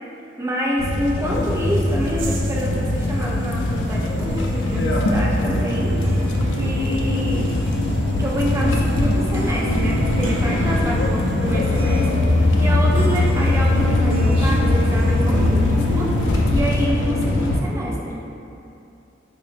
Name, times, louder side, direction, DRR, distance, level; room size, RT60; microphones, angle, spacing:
voice 1, 0.4-6.2 6.6-7.5 8.2-16.1 16.5-18.2, equal, 15° right, -3 dB, 0.3 m, -27 dB
sound 1, 0.8-17.6, left 1 dB, 85° left, 0.4 m, -20 dB
sound 2, 1.3-16.4, right 1 dB, 85° right, 0.4 m, -33 dB
4.4 x 2.1 x 3.2 m, 2.7 s
head